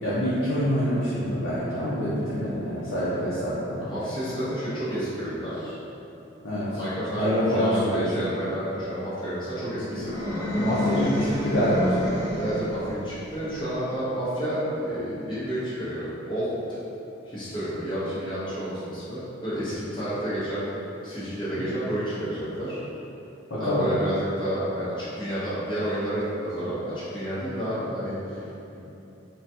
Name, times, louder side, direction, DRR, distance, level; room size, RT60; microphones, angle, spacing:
voice 1, 0.0-3.9 6.4-6.7 7.2-8.3 9.9-10.1 10.5-12.3 23.5-23.9, equal, 65° left, -11 dB, 0.6 m, -26 dB
voice 2, 3.8-5.7 6.7-11.0 12.3-16.5 17.2-20.7 21.0-22.8 23.6-28.8, right 1 dB, 25° left, -11 dB, 0.9 m, -30 dB
sound 1, 10.0-12.9, left 1 dB, 20° right, 0.5 m, -28 dB
3.8 x 2.2 x 2.8 m, 3.0 s
head